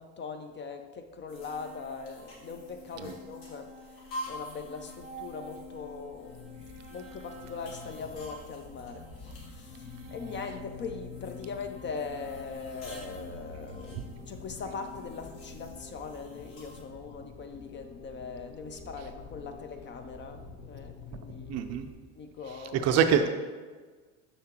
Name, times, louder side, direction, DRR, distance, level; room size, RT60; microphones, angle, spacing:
voice 1, 0.0-6.5 6.9-21.5 22.2-23.0, left 5 dB, 30° left, 7 dB, 0.5 m, -41 dB
sound 1, 1.3-16.8, left 1 dB, 75° left, 2.0 m, -47 dB
sound 2, 4.4-21.9, left 4 dB, 45° left, 1.1 m, -48 dB
voice 2, 21.5-21.9 22.7-23.3, right 7 dB, 40° right, 8 dB, 0.5 m, -24 dB
6.7 x 5.6 x 2.9 m, 1.4 s
hypercardioid pair, 90°, 41 cm